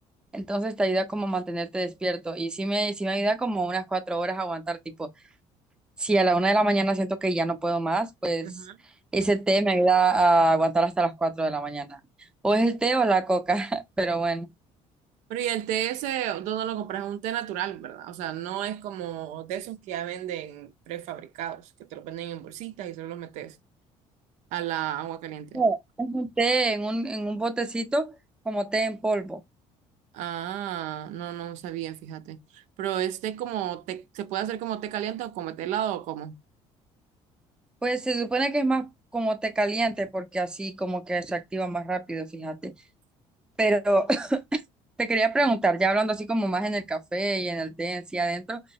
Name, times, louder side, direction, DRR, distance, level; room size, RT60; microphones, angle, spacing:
voice 1, 0.3-5.1 6.0-8.5 9.1-12.0 12.4-14.5 25.5-28.1 28.5-29.4 37.8-42.7 43.6-44.6 45.0-48.6, right 2 dB, 5° right, 0.4 m, -25 dB
voice 2, 8.4-8.8 15.3-23.6 24.5-25.6 30.1-36.3, right 11 dB, 85° right, 0.5 m, -32 dB
3.8 x 3.1 x 2.6 m
cardioid pair, 170°, 12 cm